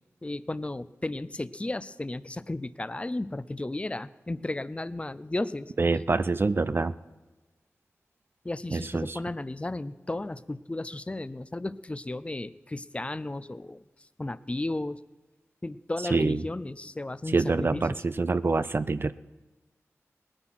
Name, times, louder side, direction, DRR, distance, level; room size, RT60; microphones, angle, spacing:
voice 1, 0.2-5.7 8.4-13.8 14.2-15.0 15.6-18.0, left 2 dB, 25° left, 16 dB, 0.5 m, -34 dB
voice 2, 5.8-6.9 8.7-9.2 16.1-16.4 17.3-19.1, right 3 dB, 45° right, 14 dB, 0.5 m, -26 dB
19.5 x 9.9 x 5.9 m, 1.2 s
wide cardioid pair, 85°, 5 cm